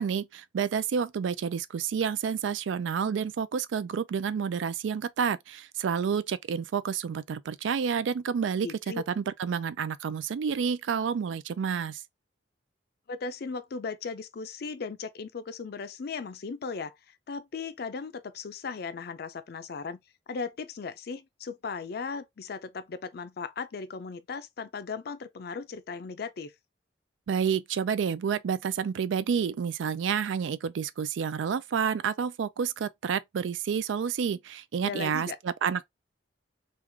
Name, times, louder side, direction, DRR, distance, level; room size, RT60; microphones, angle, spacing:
voice 1, 0.0-8.7 9.1-12.0 27.3-35.8, right 7 dB, 90° right, 0.4 m, -29 dB
voice 2, 8.6-9.0 13.1-20.0 20.3-26.5 34.8-35.4, left 5 dB, 55° left, 0.4 m, -37 dB
3.1 x 2.4 x 3.3 m
head